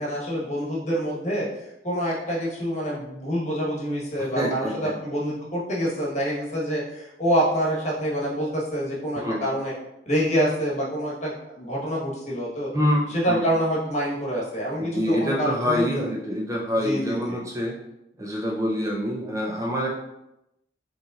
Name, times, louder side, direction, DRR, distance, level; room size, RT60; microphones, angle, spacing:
voice 1, 0.0-1.5 1.8-9.7 10.1-12.7 13.2-16.1 16.8-17.4, equal, 40° left, -4 dB, 1.2 m, -26 dB
voice 2, 4.2-4.9 9.1-9.5 12.7-13.5 14.8-17.7 18.2-19.9, equal, 20° right, -3 dB, 0.5 m, -26 dB
5.2 x 3.2 x 2.4 m, 0.88 s
head